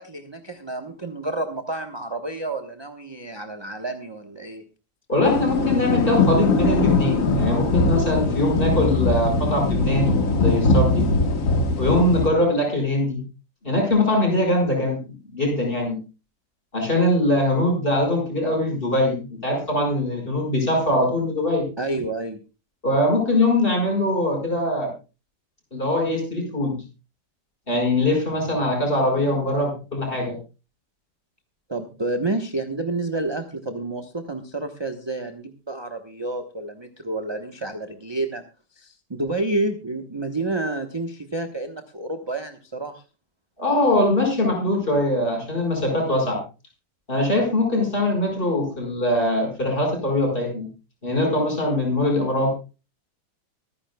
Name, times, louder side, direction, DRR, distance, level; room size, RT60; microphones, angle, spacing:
voice 1, 0.0-4.7 21.8-22.4 31.7-38.4 38.7-43.0, right 2 dB, 20° right, 6 dB, 0.9 m, -29 dB
voice 2, 5.1-11.1 11.8-13.2 13.6-15.0 15.3-16.0 16.7-21.7 22.8-24.9 25.7-26.8 27.7-30.4 43.6-46.4 47.1-50.7 51.0-52.5, left 1 dB, 30° left, 2 dB, 5.5 m, -22 dB
sound 1, 5.2-12.3, left 3 dB, 50° left, 1.7 m, -21 dB
24.5 x 9.9 x 2.3 m, 0.31 s
omnidirectional pair, 1.9 m